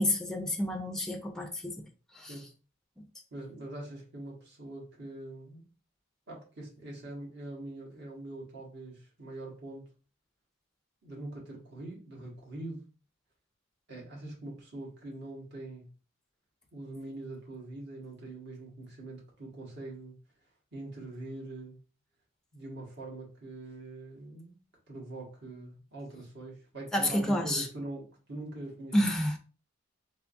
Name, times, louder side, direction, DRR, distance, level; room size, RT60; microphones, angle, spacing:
voice 1, 0.0-1.8 2.1-2.4 26.9-27.7 28.9-29.4, left 1 dB, 5° left, 0.4 m, -29 dB
voice 2, 3.3-5.6 6.3-9.9 11.0-12.8 13.9-15.9 16.7-20.2 20.7-21.8 22.5-24.5 24.9-29.1, right 2 dB, 60° right, 1.4 m, -43 dB
3.5 x 3.2 x 2.5 m
head